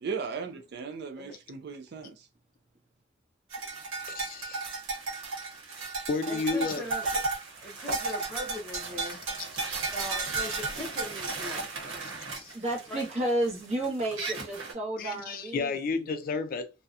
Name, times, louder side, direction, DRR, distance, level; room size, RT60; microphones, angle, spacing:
voice 1, 0.0-2.3, right 5 dB, 55° right, 0.4 m, -37 dB
sound 1, 3.5-14.7, right 3 dB, 85° right, 0.9 m, -34 dB
voice 2, 4.1-4.6 6.1-6.9 9.4-9.5 12.0-12.5 15.0-16.7, left 4 dB, 45° left, 0.4 m, -32 dB
voice 3, 6.3-7.2 7.6-9.2 9.9-11.9 12.9-13.0, left 1 dB, 5° left, 0.6 m, -40 dB
voice 4, 12.5-16.1, right 1 dB, 35° right, 0.9 m, -32 dB
2.7 x 2.1 x 2.4 m
head